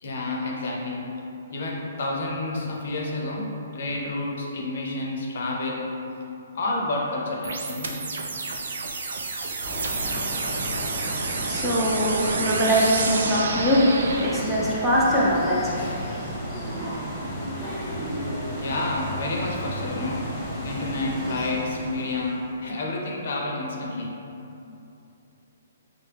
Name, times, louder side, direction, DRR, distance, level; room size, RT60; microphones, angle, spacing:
voice 1, 0.0-1.1 1.5-5.9 6.5-8.0 18.6-20.3 20.6-24.2, left 2 dB, 60° left, -1 dB, 0.6 m, -29 dB
sound 1, 7.4-14.4, right 3 dB, 75° right, 0.4 m, -30 dB
sound 2, 9.6-22.5, equal, 15° left, 0.9 m, -33 dB
voice 2, 10.9-16.2, equal, 5° right, -8 dB, 0.5 m, -23 dB
4.7 x 2.1 x 3.2 m, 2.8 s
hypercardioid pair, 160°, 0 cm